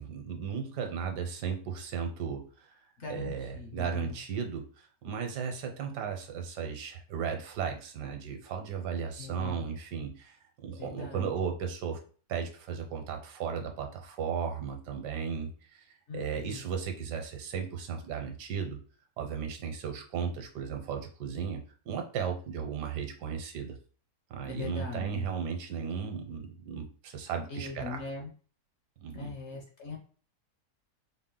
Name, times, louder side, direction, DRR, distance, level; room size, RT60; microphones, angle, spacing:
voice 1, 0.0-2.8 3.1-12.0 12.3-18.8 19.2-23.8 24.3-28.0 29.0-29.3, right 6 dB, 85° right, 4 dB, 1.3 m, -35 dB
voice 2, 3.0-4.2 9.2-9.6 10.8-11.3 16.1-16.6 24.4-25.2 27.5-28.3 29.1-30.0, left 4 dB, 55° left, 1 dB, 0.9 m, -40 dB
4.3 x 2.1 x 3.7 m, 0.41 s
omnidirectional pair, 1.8 m